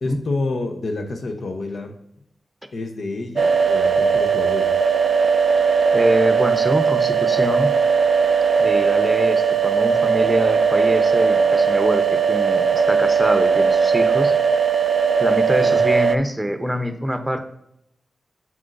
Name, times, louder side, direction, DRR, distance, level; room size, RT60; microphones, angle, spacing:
voice 1, 0.0-2.0 2.7-4.8 15.6-15.8, left 2 dB, 75° left, 5 dB, 0.8 m, -28 dB
sound 1, 3.4-16.2, right 6 dB, 65° right, 0.3 m, -18 dB
voice 2, 5.9-7.7 8.6-14.3 15.2-17.4, equal, 10° right, 7 dB, 0.8 m, -24 dB
7.4 x 6.2 x 2.6 m, 0.78 s
cardioid pair, 55°, 0 cm